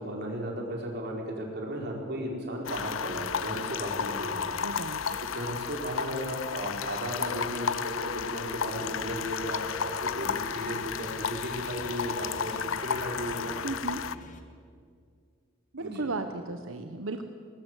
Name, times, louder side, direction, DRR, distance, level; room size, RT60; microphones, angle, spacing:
voice 1, 0.0-4.5 4.8-13.6 15.8-16.1, right 1 dB, 55° right, 0 dB, 4.7 m, -35 dB
sound 1, 2.7-14.2, left 7 dB, 90° left, 0.6 m, -33 dB
voice 2, 4.6-5.2 13.6-14.0 15.7-17.2, right 3 dB, 90° right, 7 dB, 1.1 m, -35 dB
sound 2, 8.8-14.4, left 1 dB, 40° left, 2.0 m, -50 dB
19.5 x 19.5 x 8.3 m, 2.2 s
head